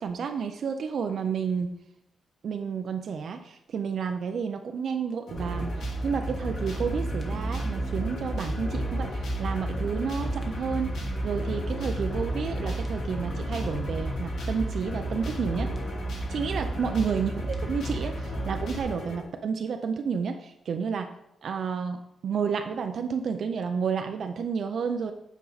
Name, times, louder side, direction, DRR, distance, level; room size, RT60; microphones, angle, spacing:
voice 1, 0.0-1.7 2.4-10.9 11.2-15.7 16.3-21.1 21.4-22.0 22.2-25.1, right 6 dB, 55° right, 6 dB, 0.5 m, -31 dB
sound 1, 5.3-19.2, left 2 dB, 75° left, 1.9 m, -42 dB
sound 2, 5.4-18.8, right 1 dB, 20° left, 1.1 m, -32 dB
8.4 x 5.4 x 4.0 m, 0.79 s
wide cardioid pair, 170°, 0 cm